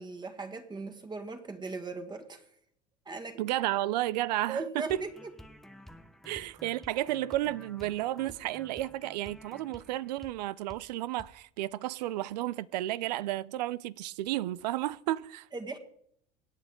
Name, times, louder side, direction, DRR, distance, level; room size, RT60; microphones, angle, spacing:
voice 1, 0.0-2.4 3.1-3.4 4.5-5.3 6.3-6.5 15.5-15.8, right 3 dB, 20° right, 1.8 m, -38 dB
voice 2, 3.4-5.0 6.2-15.5, right 15 dB, 80° right, 0.5 m, -32 dB
sound 1, 4.9-10.4 10.7-10.9 11.2-11.3, equal, ahead, 0.9 m, -52 dB
25.5 x 9.1 x 3.7 m
hypercardioid pair, 90°, 21 cm